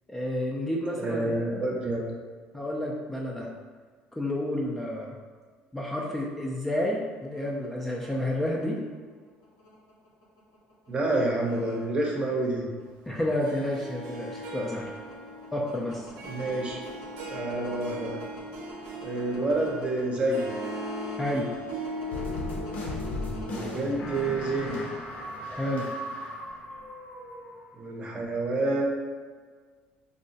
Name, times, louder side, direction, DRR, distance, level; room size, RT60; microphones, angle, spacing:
voice 1, 0.1-1.3 2.5-3.5 4.2-5.1 5.7-8.8 13.1-14.9 15.5-16.1 21.2-21.5 25.5-25.9, left 1 dB, 5° left, -3 dB, 0.3 m, -30 dB
voice 2, 1.0-2.0 10.9-12.7 16.2-16.8 17.3-18.2 19.0-20.4 23.4-24.8 27.7-28.8, right 2 dB, 30° right, -1 dB, 0.7 m, -28 dB
sound 1, 7.1-25.5 26.2-26.8, left 1 dB, 85° left, 0.8 m, -46 dB
Harp, 13.4-24.5, equal, 75° right, 0.4 m, -39 dB
sound 2, 22.1-27.8, left 1 dB, 55° left, 0.6 m, -36 dB
3.5 x 2.1 x 2.6 m, 1.5 s
cardioid pair, 105°, 3 cm